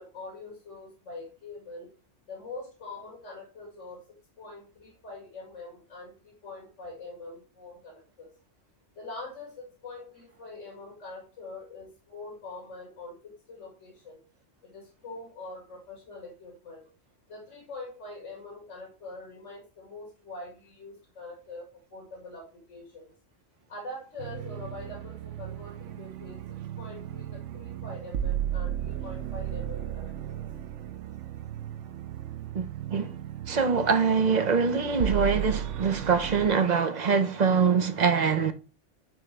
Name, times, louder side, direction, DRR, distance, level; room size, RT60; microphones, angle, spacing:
voice 1, 0.0-1.9 2.3-4.0 4.4-8.3 9.0-14.2 14.6-16.8 17.3-21.7 21.9-23.1 23.7-26.4 26.8-30.4, left 2 dB, 80° left, 2.4 m, -44 dB
sound 1, 24.2-36.5, right 11 dB, 80° right, 1.0 m, -35 dB
voice 2, 33.5-38.5, right 5 dB, 40° right, 0.8 m, -24 dB
9.4 x 3.7 x 3.3 m
omnidirectional pair, 1.2 m